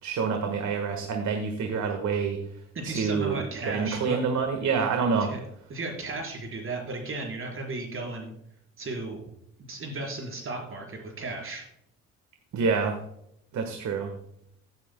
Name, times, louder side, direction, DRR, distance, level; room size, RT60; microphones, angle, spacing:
voice 1, 0.0-2.4 2.8-5.3 12.5-13.0 13.5-14.1, right 5 dB, 70° right, 4 dB, 1.5 m, -27 dB
voice 2, 2.7-4.2 5.2-5.4 5.7-8.3 8.8-9.2 9.7-11.6, right 2 dB, 45° right, 0 dB, 4.6 m, -35 dB
15.5 x 9.1 x 2.2 m, 0.75 s
cardioid pair, 90°, 30 cm